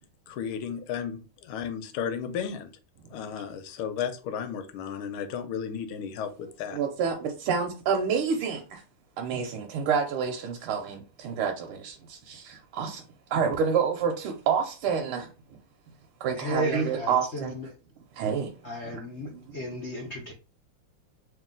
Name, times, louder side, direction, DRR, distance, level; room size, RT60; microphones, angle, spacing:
voice 1, 0.3-2.7 3.1-6.8, left 7 dB, 85° left, 1.5 m, -34 dB
voice 2, 6.7-8.8 9.2-13.0 13.3-15.3 16.2-17.5 18.1-18.5 18.9-19.6, right 6 dB, 90° right, 1.6 m, -28 dB
voice 3, 16.4-17.7 18.6-20.3, equal, 65° left, 0.6 m, -33 dB
3.2 x 3.0 x 3.7 m
omnidirectional pair, 2.3 m